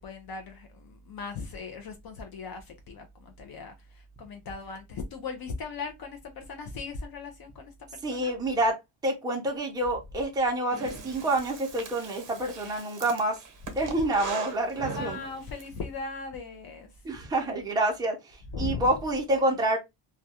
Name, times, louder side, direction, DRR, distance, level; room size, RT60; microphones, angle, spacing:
voice 1, 0.0-3.7 4.2-8.3 12.4-12.5 14.7-16.9 18.5-18.9, left 4 dB, 50° left, 0.5 m, -38 dB
voice 2, 8.0-8.8 9.0-13.4 13.8-15.2 17.0-18.2 18.6-19.8, right 1 dB, 10° right, 0.5 m, -27 dB
Breathing, 10.7-15.7, right 4 dB, 40° right, 0.8 m, -40 dB
2.3 x 2.2 x 2.7 m
cardioid pair, 150°, 49 cm